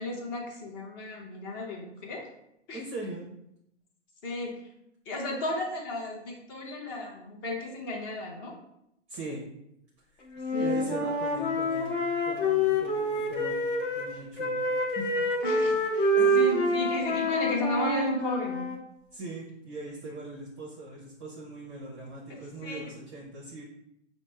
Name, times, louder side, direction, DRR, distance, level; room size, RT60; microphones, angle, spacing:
voice 1, 0.0-2.2 2.7-2.8 4.2-4.6 5.1-8.5 10.5-10.8 15.4-16.1 16.3-18.7 22.6-22.9, left 2 dB, 20° left, 0 dB, 0.6 m, -34 dB
voice 2, 2.7-3.3 9.1-9.4 10.5-12.0 12.2-14.6 14.9-15.2 16.2-16.4 19.1-23.6, right 2 dB, 25° right, -3 dB, 0.6 m, -40 dB
Wind instrument woodwind instrument, 10.4-14.1 14.4-18.8, equal, 45° left, 1.0 m, -27 dB
5.0 x 2.0 x 3.2 m, 0.79 s
figure-of-eight pair, 120°, 36 cm